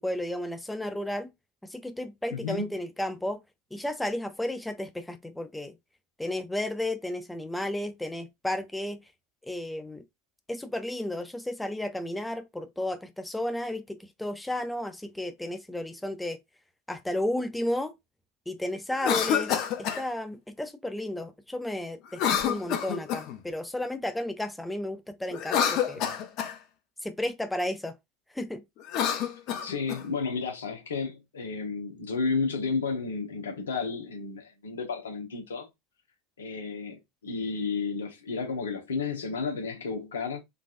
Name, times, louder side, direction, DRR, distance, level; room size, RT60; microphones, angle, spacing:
voice 1, 0.0-1.3 1.6-3.4 3.7-5.7 6.2-9.0 9.4-10.0 10.5-16.4 16.9-17.9 18.5-26.1 27.0-27.9 28.3-28.6, left 1 dB, 5° left, 0.5 m, -33 dB
voice 2, 2.3-2.7 26.0-26.1 29.6-35.7 36.4-40.4, left 4 dB, 85° left, 1.0 m, -32 dB
Cough, 18.9-20.0 22.1-23.4 25.3-26.6 28.8-30.0, left 8 dB, 55° left, 0.7 m, -28 dB
3.8 x 2.4 x 2.5 m
hypercardioid pair, 85°, 0 cm